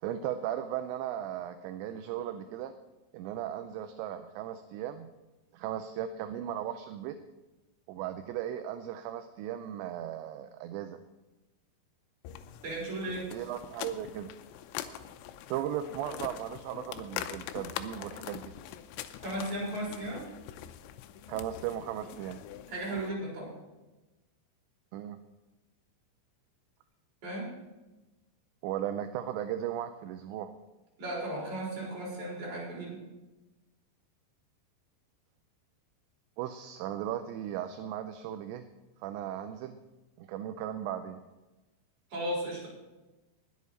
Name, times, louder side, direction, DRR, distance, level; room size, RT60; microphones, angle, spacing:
voice 1, 0.0-2.7 3.1-5.1 5.5-7.2 7.9-11.0 13.3-14.3 15.5-18.5 21.3-22.4 24.9-25.2 28.6-30.5 36.4-38.6 39.0-39.8 40.2-41.2, right 11 dB, 80° right, 9 dB, 2.8 m, -36 dB
sound 1, 12.3-23.1, left 11 dB, 85° left, 3.0 m, -43 dB
voice 2, 12.6-13.3 19.2-20.2 22.7-23.5 27.2-27.5 31.0-33.0 42.1-42.7, right 1 dB, 40° right, -4 dB, 5.5 m, -35 dB
20.5 x 8.3 x 4.2 m, 1.1 s
omnidirectional pair, 5.3 m